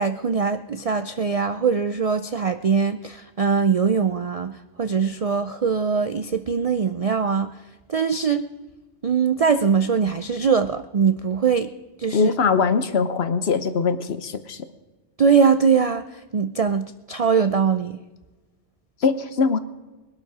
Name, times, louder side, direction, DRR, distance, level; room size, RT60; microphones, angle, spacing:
voice 1, 0.0-7.5 7.9-8.5 9.0-11.7 12.0-12.3 15.2-18.0, right 6 dB, 50° right, 11 dB, 0.4 m, -22 dB
voice 2, 12.1-14.6 19.0-19.6, left 5 dB, 60° left, 12 dB, 1.1 m, -22 dB
20.5 x 12.0 x 4.8 m, 1.2 s
omnidirectional pair, 1.2 m